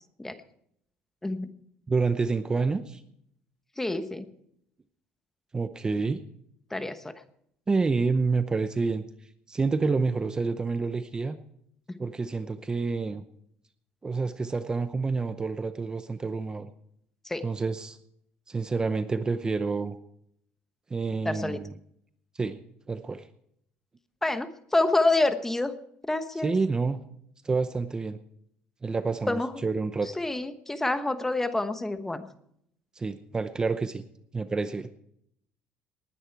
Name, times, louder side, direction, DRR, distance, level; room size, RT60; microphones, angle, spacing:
voice 1, 1.9-3.0 5.5-6.2 7.7-9.0 9.5-11.4 12.0-13.2 14.0-16.7 17.4-18.0 18.5-20.0 20.9-21.7 22.3-22.6 22.9-23.3 26.4-27.0 27.4-28.2 28.8-30.1 33.0-34.0 34.3-34.9, right 4 dB, 20° right, 11 dB, 0.7 m, -28 dB
voice 2, 3.8-4.2 6.7-7.1 11.9-12.0 17.2-17.4 21.2-21.6 24.2-25.7 26.1-26.5 29.3-29.5 30.2-32.3, left 2 dB, 10° left, 10 dB, 1.1 m, -27 dB
19.5 x 9.9 x 4.6 m, 0.72 s
cardioid pair, 115°, 4 cm